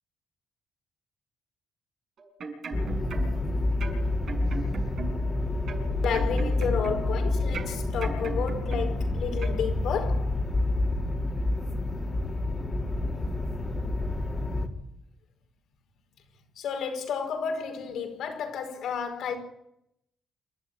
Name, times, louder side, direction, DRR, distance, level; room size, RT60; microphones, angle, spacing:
sound 1, 2.2-3.5 3.8-5.3 5.7-7.2 7.5-9.1 9.4-9.6, right 4 dB, 60° right, 6.5 m, -38 dB
sound 2, 2.7-14.7, left 2 dB, 25° left, 3.4 m, -28 dB
voice 1, 6.0-10.4 16.5-19.4, left 6 dB, 75° left, 5.0 m, -31 dB
28.0 x 12.5 x 9.0 m
cardioid pair, 90°, 0 cm